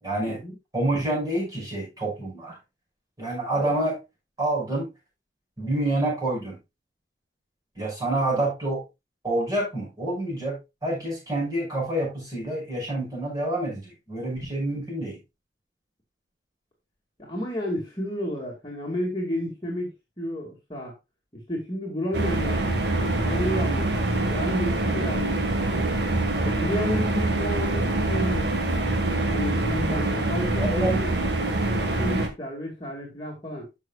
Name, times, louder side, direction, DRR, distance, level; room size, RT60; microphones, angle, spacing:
voice 1, 0.0-0.4 0.7-2.5 3.2-4.0 4.4-4.9 5.6-6.6 7.8-8.8 9.2-10.5 10.8-15.2 30.6-31.0, right 1 dB, 20° right, -3 dB, 6.2 m, -27 dB
voice 2, 17.2-20.9 21.3-25.9 26.4-28.5 29.3-31.1 31.6-33.7, equal, 25° left, -3 dB, 2.2 m, -32 dB
sound 1, 22.1-32.3, right 2 dB, 65° right, 1.7 m, -25 dB
13.0 x 6.0 x 2.4 m, 0.24 s
head